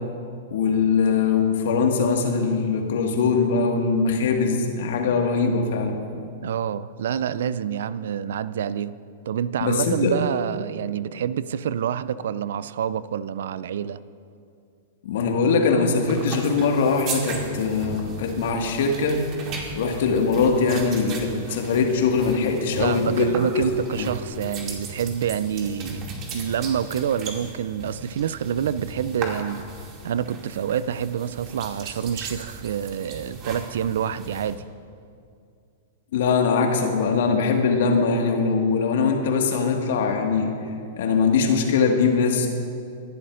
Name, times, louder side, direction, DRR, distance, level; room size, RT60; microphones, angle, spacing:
voice 1, 0.5-6.0 9.6-10.1 15.0-19.2 19.8-23.6 23.9-24.1 36.1-40.5 41.0-42.5, left 5 dB, 60° left, 3 dB, 1.8 m, -22 dB
voice 2, 6.4-8.9 9.3-14.0 22.8-26.0 26.3-29.6 30.0-34.6, right 9 dB, 65° right, 17 dB, 0.4 m, -27 dB
sound 1, 16.1-34.5, right 3 dB, 35° right, 2.4 m, -37 dB
25.0 x 11.5 x 2.6 m, 2.4 s
figure-of-eight pair, 100°, 0 cm